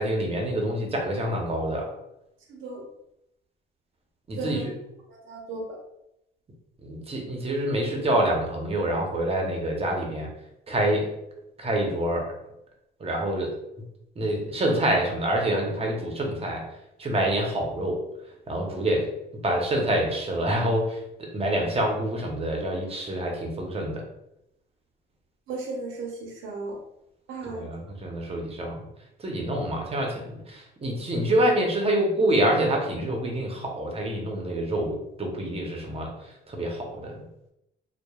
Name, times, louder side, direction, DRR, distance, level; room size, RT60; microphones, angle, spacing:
voice 1, 0.0-1.9 4.3-4.7 6.8-10.3 10.7-11.1 11.6-12.3 13.0-13.5 14.2-16.6 17.0-18.0 18.5-19.1 19.4-24.0 27.5-28.8 29.2-37.2, right 1 dB, 30° right, 0 dB, 0.7 m, -26 dB
voice 2, 2.5-2.8 4.4-4.6 5.3-5.6 25.5-26.7 27.3-27.7, right 3 dB, 80° right, -1 dB, 0.6 m, -35 dB
2.9 x 2.1 x 2.2 m, 0.85 s
cardioid pair, 90°, 20 cm